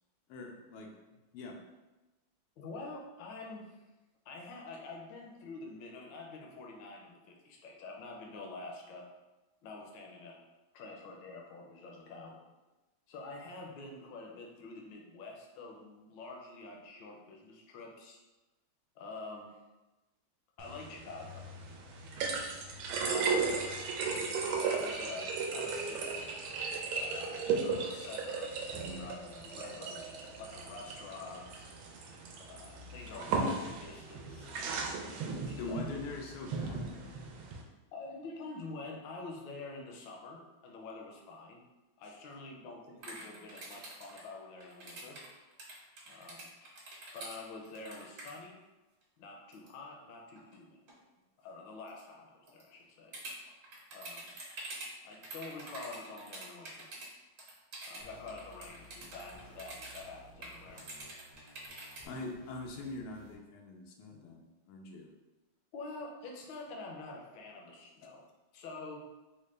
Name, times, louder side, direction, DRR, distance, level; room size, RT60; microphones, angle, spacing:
voice 1, 0.3-0.9 1.3-1.6 35.6-37.2 62.0-65.1, left 3 dB, 90° left, 1 dB, 1.5 m, -43 dB
voice 2, 2.6-3.8 4.2-9.1 9.6-10.4 10.7-12.4 13.1-18.2 19.0-19.6 20.6-21.4 23.0-24.1 24.5-26.2 26.9-31.7 32.4-34.5 35.0-35.8 37.9-41.6 42.0-45.2 46.1-46.5 47.1-48.6 49.2-50.8 51.4-53.2 53.9-54.3 55.0-56.9 57.9-60.8 65.7-68.2 68.5-69.0, left 3 dB, 70° left, 0 dB, 1.2 m, -47 dB
sound 1, 20.6-37.6, right 4 dB, 80° right, 1.4 m, -36 dB
sound 2, 43.0-48.3 49.5-49.7 50.4-50.6 50.9-51.0 51.9-52.0 52.5-52.6 53.1-57.1 57.4-60.1 60.4-62.1, right 2 dB, 50° right, 1.3 m, -46 dB
sound 3, 58.0-63.3, equal, 30° right, 0.5 m, -57 dB
4.0 x 2.1 x 3.2 m, 1.1 s
omnidirectional pair, 2.3 m